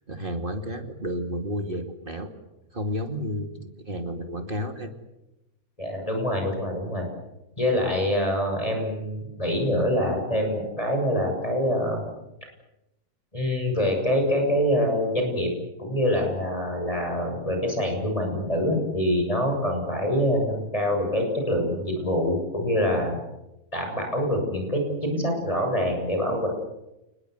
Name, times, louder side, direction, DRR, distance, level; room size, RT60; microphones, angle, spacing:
voice 1, 0.1-2.3 2.7-4.9, equal, 35° right, 6 dB, 2.6 m, -31 dB
voice 2, 5.8-7.0 7.6-12.0 13.3-15.5 15.8-23.2 23.7-26.5, equal, 20° left, 2 dB, 7.2 m, -25 dB
29.0 x 21.0 x 8.0 m, 0.94 s
omnidirectional pair, 1.6 m